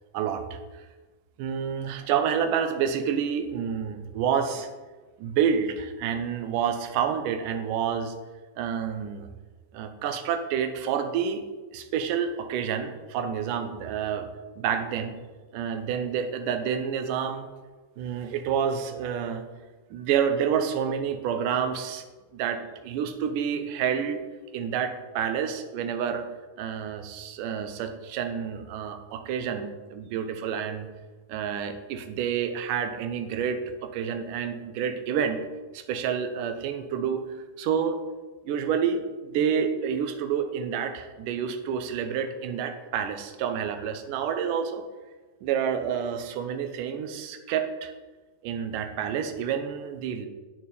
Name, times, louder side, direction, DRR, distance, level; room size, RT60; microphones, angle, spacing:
voice 1, 0.1-0.8 1.4-4.7 5.2-8.1 8.6-9.3 9.7-11.4 11.7-14.3 14.6-15.1 15.5-17.5 18.0-19.4 19.9-22.1 22.3-24.2 24.5-26.2 26.6-30.9 31.3-35.4 35.7-37.2 37.6-38.0 38.4-44.8 45.4-47.9 48.4-50.3, right 7 dB, 45° right, 8 dB, 1.0 m, -28 dB
9.0 x 6.7 x 5.2 m, 1.3 s
figure-of-eight pair, 90°, 0 cm